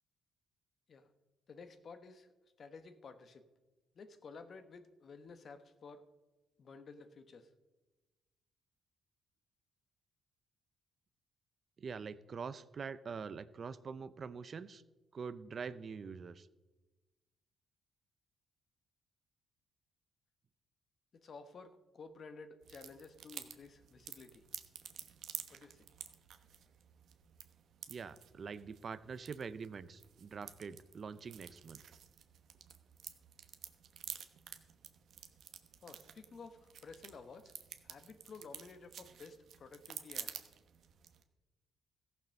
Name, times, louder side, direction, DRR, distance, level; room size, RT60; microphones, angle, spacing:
voice 1, 1.5-2.3 2.6-3.4 3.9-6.1 6.6-7.5 21.2-24.4 25.5-25.9 35.8-37.5 37.8-40.3, left 4 dB, 50° left, 10 dB, 1.1 m, -53 dB
voice 2, 11.8-14.8 15.1-16.5 27.9-31.8, right 5 dB, 45° right, 15 dB, 0.5 m, -45 dB
sound 1, 22.6-41.2, right 8 dB, 65° right, 1.0 m, -51 dB
14.5 x 6.9 x 6.4 m, 1.2 s
cardioid pair, 90°, 0 cm